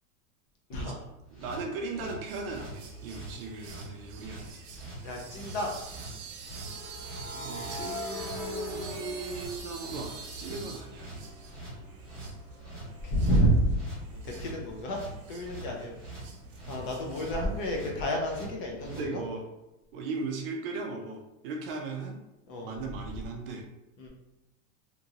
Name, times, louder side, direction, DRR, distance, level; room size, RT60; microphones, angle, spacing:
sound 1, 1.3-19.1, right 2 dB, ahead, 1.2 m, -45 dB
voice 1, 1.4-4.4 7.3-11.1 18.9-19.5 19.9-22.2 22.6-23.6, right 3 dB, 45° right, 2 dB, 0.4 m, -37 dB
sound 2, 2.3-17.8, right 4 dB, 80° right, 0.8 m, -46 dB
sound 3, 3.3-3.5 6.6-10.5 10.9-14.4, left 3 dB, 50° left, 0.9 m, -42 dB
voice 2, 5.0-5.7 13.0-13.8 14.1-15.0 15.3-16.0 16.7-19.2 22.5-22.7 24.0-24.1, equal, 35° left, 0 dB, 0.5 m, -29 dB
2.9 x 2.5 x 2.7 m, 0.95 s
supercardioid pair, 155°, 43 cm